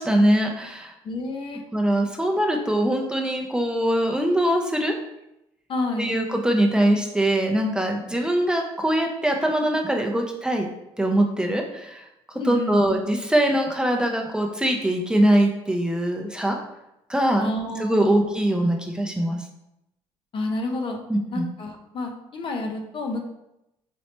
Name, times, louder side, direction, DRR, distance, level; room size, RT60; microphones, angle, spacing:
voice 1, 0.0-0.9 1.7-4.9 6.0-10.7 11.0-16.6 17.1-19.5 21.1-21.5, right 1 dB, 5° right, 2 dB, 0.5 m, -22 dB
voice 2, 1.0-1.6 5.7-6.2 12.3-13.0 17.4-18.2 20.3-21.0 21.3-23.3, left 2 dB, 45° left, 4 dB, 0.6 m, -29 dB
4.2 x 3.1 x 2.9 m, 0.87 s
supercardioid pair, 85°, 12 cm